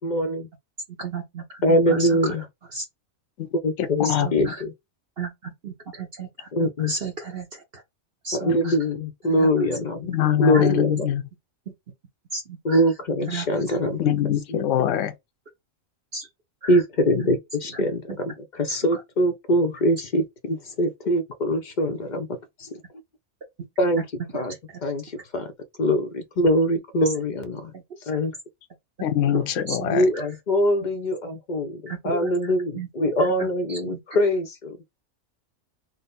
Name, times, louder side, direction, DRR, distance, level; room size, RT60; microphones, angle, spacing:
voice 1, 0.0-0.5 1.6-2.4 3.6-4.7 6.5-6.9 8.3-10.1 10.4-11.1 12.6-14.0 14.5-14.6 16.7-22.3 22.6-22.7 23.8-24.1 24.3-24.5 24.8-25.5 25.8-27.7 28.1-28.3 29.9-34.8, equal, 45° left, 0.7 m, -23 dB
voice 2, 1.0-2.1 4.0-4.6 5.2-7.5 8.2-8.7 9.3-9.5 10.5-10.6 12.3-12.8 13.3-13.5 16.1-16.3 16.6-16.7 27.7-27.8 29.3-30.0 31.9-32.3 32.7-32.9 33.7-34.0, right 4 dB, 50° right, 1.1 m, -33 dB
voice 3, 3.8-4.5 8.5-8.6 10.1-11.2 14.0-15.1 29.0-30.1, left 10 dB, 70° left, 1.0 m, -23 dB
4.0 x 2.1 x 3.9 m
omnidirectional pair, 1.4 m